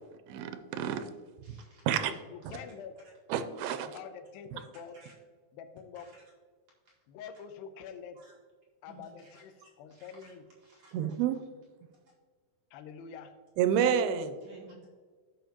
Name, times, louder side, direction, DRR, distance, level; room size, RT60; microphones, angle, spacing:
voice 1, 0.3-1.1 1.5-1.6 1.9-2.1 3.3-3.9 4.5-4.6 10.9-11.4 13.6-14.3, right 8 dB, 85° right, 9 dB, 2.5 m, -29 dB
voice 2, 1.4-1.9 2.5-2.6 5.0-5.1 6.0-6.2 6.9-7.0 8.2-8.3 8.9-9.1 9.3-10.3 10.6-11.0 14.4-14.9, right 3 dB, 50° right, -5 dB, 2.7 m, -56 dB
voice 3, 2.0-2.9 3.8-5.0 5.5-6.1 7.1-8.2 8.8-10.4 12.7-13.3, left 7 dB, 80° left, 7 dB, 2.4 m, -46 dB
13.5 x 5.6 x 2.9 m, 1.5 s
omnidirectional pair, 4.3 m